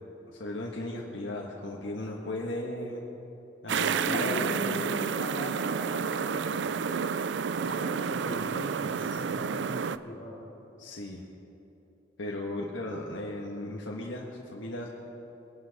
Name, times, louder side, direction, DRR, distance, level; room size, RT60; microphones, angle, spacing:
voice 1, 0.3-3.0 3.6-4.8 9.0-9.2 10.8-11.2 12.2-14.9, left 1 dB, 85° left, -2 dB, 1.4 m, -36 dB
sound 1, 3.7-10.0, right 6 dB, 65° right, 0.4 m, -30 dB
voice 2, 4.0-6.9 7.6-10.5, equal, 40° left, -11 dB, 3.3 m, -39 dB
23.0 x 11.5 x 4.1 m, 2.9 s
head